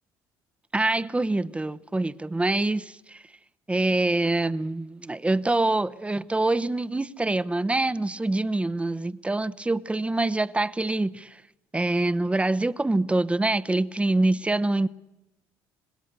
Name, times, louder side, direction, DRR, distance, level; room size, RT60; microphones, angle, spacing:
voice 1, 0.7-3.2 3.7-11.4 11.7-14.9, right 2 dB, 15° right, 0.8 m, -25 dB
26.5 x 20.5 x 6.6 m
supercardioid pair, 75°, 9 cm